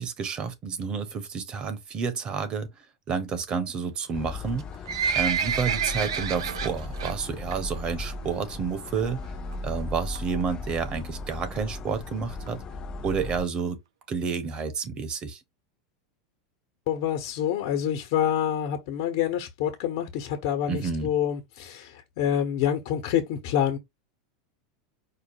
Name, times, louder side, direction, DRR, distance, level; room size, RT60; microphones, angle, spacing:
voice 1, 0.0-2.7 3.1-4.7 5.1-9.2 9.6-12.6 13.0-13.8 14.1-15.4 20.7-21.1, right 5 dB, 35° right, 1.2 m, -30 dB
sound 1, 4.1-13.5, left 2 dB, 30° left, 0.5 m, -37 dB
Livestock farm animals working animals, 4.5-7.1 7.5-7.8 8.1-8.2 8.9-9.0 9.2-9.3 9.5-9.6 10.1-10.4 11.0-11.1 11.3-11.4 11.6-11.7 11.9-12.0 12.5-12.6 13.0-13.1 13.6-13.7, right 7 dB, 80° right, 0.8 m, -28 dB
voice 2, 16.9-23.8, left 9 dB, 60° left, 1.2 m, -27 dB
5.0 x 2.2 x 4.8 m
hypercardioid pair, 105°, 3 cm